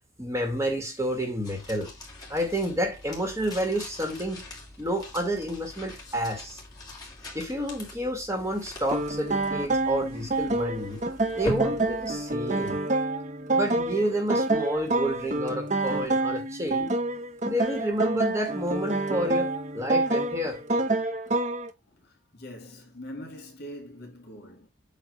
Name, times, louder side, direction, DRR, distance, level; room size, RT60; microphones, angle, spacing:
voice 1, 0.2-1.9 2.3-4.4 4.8-6.6 7.3-11.0 11.3-12.8 13.5-16.9 17.4-20.6, equal, 15° right, 2.1 m, -30 dB
sound 1, 1.4-12.8, left 1 dB, 20° left, 2.6 m, -42 dB
sound 2, 8.9-21.7, right 2 dB, 40° right, 0.9 m, -27 dB
voice 2, 21.8-24.7, equal, 55° left, 3.1 m, -43 dB
8.3 x 3.2 x 5.5 m
head